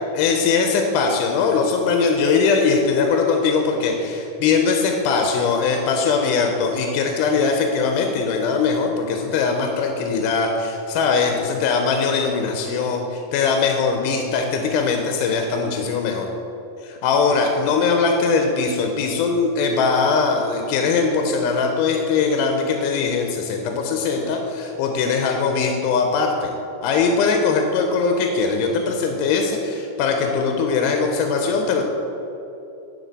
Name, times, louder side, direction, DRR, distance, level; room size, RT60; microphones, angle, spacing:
voice 1, 0.1-16.3 16.8-26.5 26.8-31.8, left 5 dB, 85° left, 3 dB, 2.1 m, -21 dB
11.0 x 3.9 x 4.0 m, 2.9 s
omnidirectional pair, 3.7 m